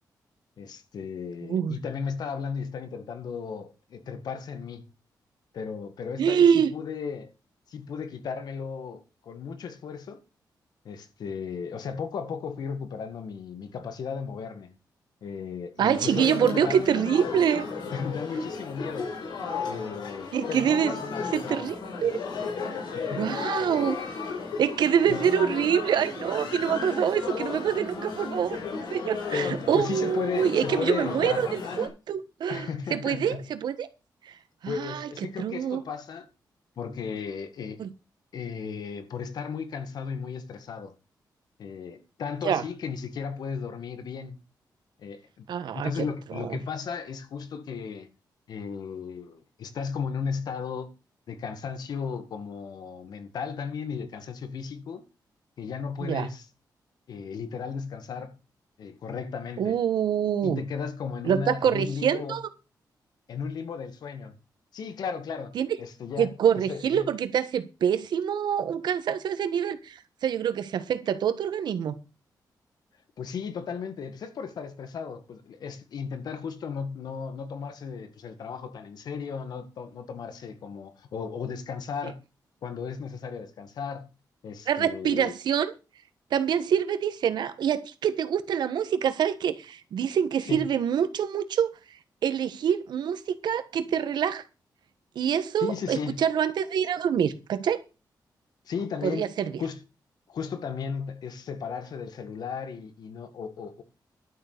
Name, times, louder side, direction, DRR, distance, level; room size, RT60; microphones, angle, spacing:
voice 1, 0.6-4.9 5.5-7.3 7.7-10.2 10.8-14.7 15.2-16.8 17.9-19.1 19.7-21.5 22.9-23.6 25.1-25.3 29.3-31.5 32.5-33.5 34.7-36.3 36.8-37.9 38.3-40.9 41.6-44.4 45.0-48.1 48.5-50.9 51.3-55.0 55.6-56.5 57.1-58.4 58.8-59.8 60.4-62.4 63.3-64.4 64.7-66.3 66.7-67.1 73.2-82.2 82.6-84.1 84.4-85.3 90.5-90.7 95.6-96.2 98.7-99.3 99.6-99.8 100.3-103.8, left 6 dB, 65° left, 1.9 m, -35 dB
voice 2, 1.4-1.8 6.2-6.7 15.8-17.7 20.3-20.9 21.3-22.1 23.1-24.0 24.6-28.6 28.9-33.9 34.2-34.4 34.6-35.1 35.4-35.8 37.8-37.9 42.4-42.6 45.5-46.1 46.3-46.6 56.0-56.3 59.6-60.6 61.2-62.5 65.5-65.7 66.2-72.0 84.7-85.7 86.3-91.7 92.2-94.4 95.1-97.8 99.0-99.6, right 8 dB, 80° right, 1.4 m, -26 dB
sound 1, 15.9-31.9, left 4 dB, 85° left, 5.4 m, -34 dB
12.0 x 6.9 x 6.7 m
wide cardioid pair, 180°, 7 cm